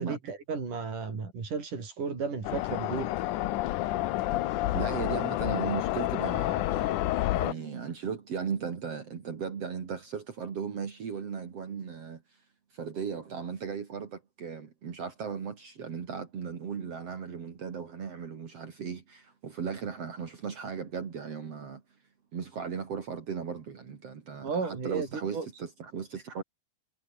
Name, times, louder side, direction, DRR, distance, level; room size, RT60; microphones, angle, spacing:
voice 1, 0.0-3.1 24.4-25.5, right 5 dB, 90° right, 6.8 m, -34 dB
sound 1, 2.4-7.5, left 16 dB, 85° left, 2.3 m, -29 dB
voice 2, 4.7-7.0 7.4-12.2 12.7-21.8 22.3-26.4, right 6 dB, 55° right, 3.3 m, -37 dB
omnidirectional pair, 3.5 m